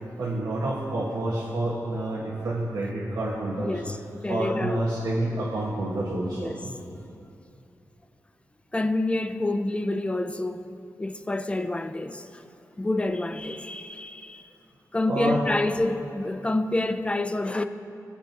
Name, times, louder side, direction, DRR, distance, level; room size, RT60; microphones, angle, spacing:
voice 1, 0.2-3.8 4.3-6.7 15.1-15.4, right 1 dB, 85° right, 1.7 m, -28 dB
voice 2, 3.6-5.0 6.3-6.6 8.7-10.7 11.0-12.4 12.8-14.4 14.9-17.6, left 2 dB, 15° left, 0.6 m, -28 dB
23.5 x 7.8 x 3.0 m
cardioid pair, 80°, 7 cm